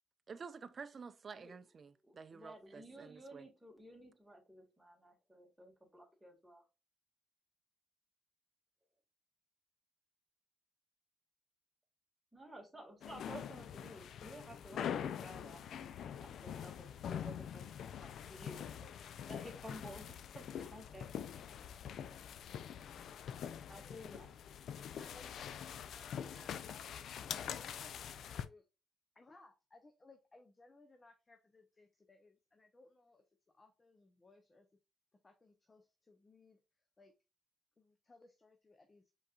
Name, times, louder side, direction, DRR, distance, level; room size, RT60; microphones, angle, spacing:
voice 1, 0.3-3.5, right 5 dB, 40° right, 0.4 m, -50 dB
voice 2, 2.0-6.6 12.3-18.7 19.0-21.1 23.7-24.3, equal, 5° right, 2.0 m, -54 dB
sound 1, 13.0-28.5, left 8 dB, 70° left, 0.4 m, -44 dB
voice 3, 23.8-24.1 25.0-28.6 29.1-33.2 33.5-34.7 35.2-36.6 37.0-37.1 37.8-39.1, left 2 dB, 25° left, 0.6 m, -63 dB
5.2 x 3.9 x 2.4 m
cardioid pair, 90°, 0 cm